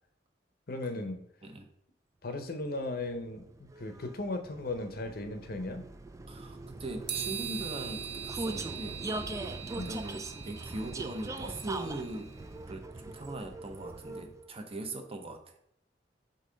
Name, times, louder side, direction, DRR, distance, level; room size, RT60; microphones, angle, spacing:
voice 1, 0.7-1.2 2.2-5.9 9.8-10.0, left 2 dB, 55° left, 7 dB, 0.8 m, -36 dB
Vehicle, 2.6-14.5, right 2 dB, 20° right, 0.3 m, -41 dB
voice 2, 6.3-9.0 9.8-12.3 12.7-15.5, right 2 dB, 35° right, 4 dB, 0.8 m, -40 dB
sound 1, 7.1-12.4, right 9 dB, 75° right, 0.7 m, -41 dB
6.9 x 2.8 x 5.1 m, 0.70 s
head